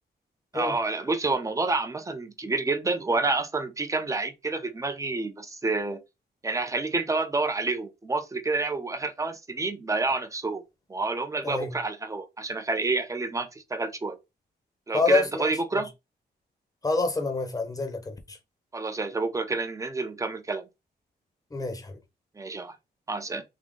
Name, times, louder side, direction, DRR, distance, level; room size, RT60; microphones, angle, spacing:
voice 1, 0.5-6.0 6.4-10.6 10.9-14.2 14.9-15.9 18.7-20.7 22.4-22.8 23.1-23.4, right 3 dB, 20° right, 0.6 m, -29 dB
voice 2, 14.9-15.5 16.8-18.4 21.5-21.9, left 3 dB, 20° left, 0.9 m, -27 dB
3.7 x 2.7 x 3.7 m
wide cardioid pair, 120°, 18 cm